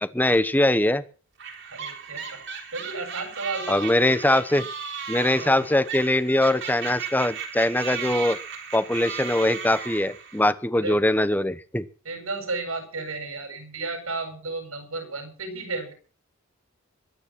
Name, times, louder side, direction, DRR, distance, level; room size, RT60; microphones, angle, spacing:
voice 1, 0.0-1.0 3.7-4.6 5.1-8.4 8.7-11.8, left 1 dB, 10° left, 14 dB, 1.0 m, -22 dB
sound 1, 1.4-10.5, right 6 dB, 60° right, 3.6 m, -36 dB
voice 2, 1.7-2.4 2.7-4.6 5.4-5.5 10.7-11.0 12.0-15.9, right 3 dB, 90° right, 5 dB, 7.9 m, -33 dB
22.5 x 10.0 x 6.0 m, 0.40 s
head